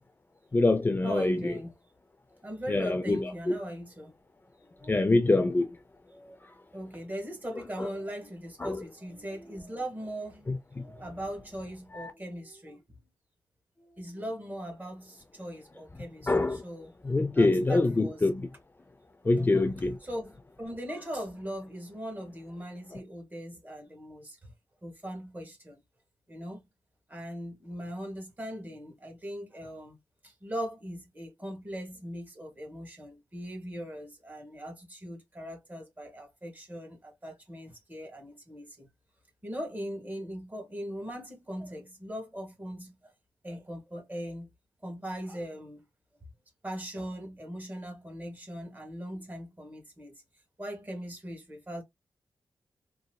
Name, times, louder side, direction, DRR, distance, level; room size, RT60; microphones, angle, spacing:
voice 1, 0.5-1.5 2.7-3.6 4.9-5.7 8.6-8.8 10.5-10.6 11.9-12.1 16.3-16.6 17.0-18.5 19.3-20.0, left 2 dB, 25° left, 0.5 m, -25 dB
voice 2, 1.0-1.7 2.4-4.1 4.8-5.0 6.1-6.4 6.7-10.5 10.7-13.0 13.8-16.9 17.4-18.3 19.3-19.7 20.0-24.5 24.8-25.8 26.3-26.6 27.1-30.0 30.2-38.9 39.4-43.0 43.4-44.5 44.8-45.8 46.6-50.2 50.6-51.8, equal, 25° right, 1.7 m, -40 dB
4.0 x 2.4 x 2.2 m
cardioid pair, 75°, 8 cm